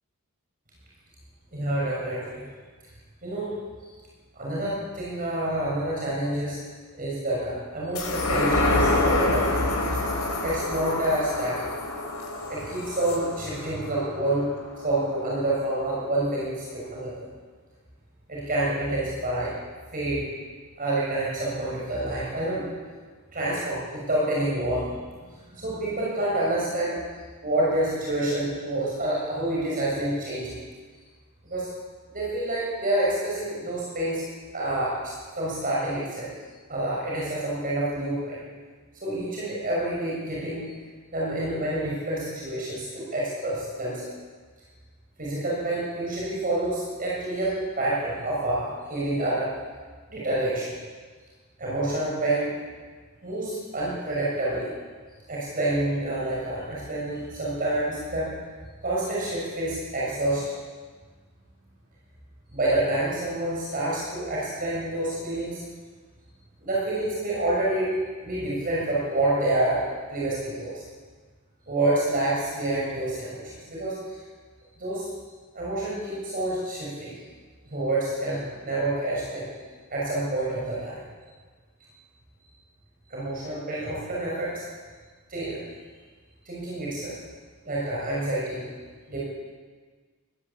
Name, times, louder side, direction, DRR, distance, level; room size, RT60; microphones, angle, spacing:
voice 1, 1.5-2.4 3.2-3.5 4.3-6.6 7.0-9.7 10.4-11.7 12.5-14.5 14.8-17.2 18.3-19.5 19.9-20.3 20.8-22.7 23.3-25.0 25.5-27.0 27.4-30.6 31.4-31.7 32.1-34.3 34.5-36.3 36.7-38.4 39.0-40.7 41.1-44.1 45.2-49.5 50.1-50.7 51.6-52.5 53.2-54.7 55.3-58.3 58.8-60.5 62.5-65.6 66.6-68.0 68.2-69.8 70.1-70.8 71.7-74.2 74.8-75.1 75.5-77.2 77.7-79.5 79.9-81.0 83.1-84.6 85.3-85.6 86.4-87.2 87.6-88.7 89.1-89.2, right 1 dB, 40° right, -6 dB, 6.5 m, -28 dB
sound 1, 7.9-14.7 15.2-15.3, left 2 dB, 90° left, 5.1 m, -27 dB
21.0 x 15.5 x 8.5 m, 1.5 s
head